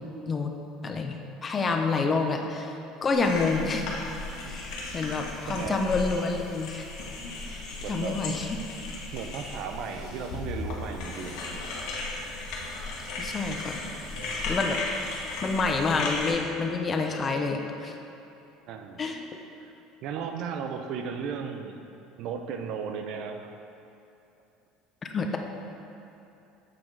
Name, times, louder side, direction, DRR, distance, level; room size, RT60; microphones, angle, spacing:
voice 1, 0.8-2.7 3.0-3.9 4.5-6.9 7.9-8.5 13.2-13.8 14.5-14.8 15.4-17.9 19.0-19.2 25.1-25.4, left 4 dB, 25° left, 4 dB, 0.4 m, -28 dB
sound 1, 3.1-16.3, left 3 dB, 65° left, 1.2 m, -36 dB
voice 2, 5.5-5.8 7.8-8.2 9.1-11.8 14.2-14.5 18.7-19.1 19.6-19.7 20.0-21.8 22.2-23.5, right 6 dB, 55° right, 6 dB, 0.4 m, -36 dB
7.4 x 4.6 x 3.7 m, 2.8 s
cardioid pair, 150°, 0 cm